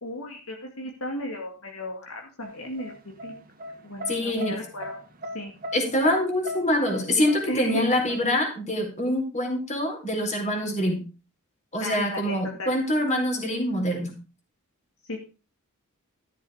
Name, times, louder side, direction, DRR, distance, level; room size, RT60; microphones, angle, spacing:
voice 1, 0.0-2.9 3.2-3.3 3.8-5.0 5.3-5.5 7.5-7.9 11.8-12.7 15.1-15.2, left 1 dB, 65° left, 2 dB, 2.2 m, -35 dB
sound 1, 2.4-8.3, left 1 dB, 40° right, 1.9 m, -36 dB
voice 2, 4.1-4.6 5.7-11.0 11.7-14.1, left 1 dB, 30° left, 2 dB, 4.3 m, -25 dB
13.5 x 7.4 x 5.0 m, 0.33 s
head